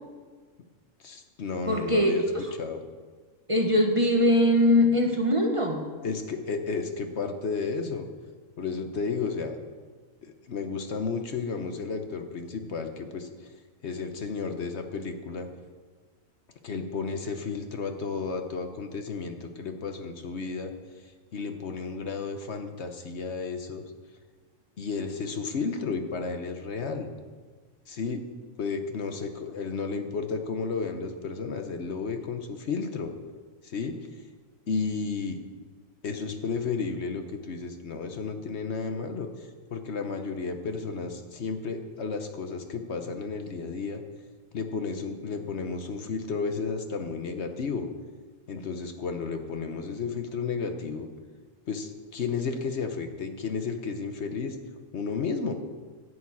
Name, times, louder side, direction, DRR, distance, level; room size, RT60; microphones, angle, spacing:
voice 1, 1.0-2.2 2.6-2.8 6.0-8.1 8.6-9.6 10.2-13.3 13.8-15.5 16.6-20.7 21.3-23.8 24.8-27.1 27.9-28.2 28.6-33.1 33.6-34.0 34.7-35.4 36.0-44.0 44.5-47.9 48.5-51.1 51.7-54.6 54.9-55.5, left 4 dB, 60° left, 6 dB, 1.1 m, -32 dB
voice 2, 1.7-2.5 3.5-5.8, left 1 dB, 25° right, 2 dB, 1.1 m, -22 dB
11.0 x 7.0 x 8.4 m, 1.5 s
omnidirectional pair, 1.4 m